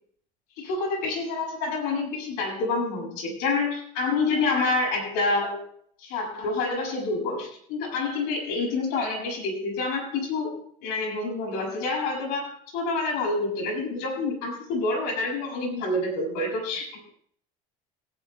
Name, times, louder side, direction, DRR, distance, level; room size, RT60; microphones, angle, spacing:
voice 1, 0.6-5.7 6.0-17.1, left 3 dB, 85° left, 1 dB, 7.5 m, -28 dB
18.0 x 18.0 x 2.3 m, 0.63 s
cardioid pair, 170°, 16 cm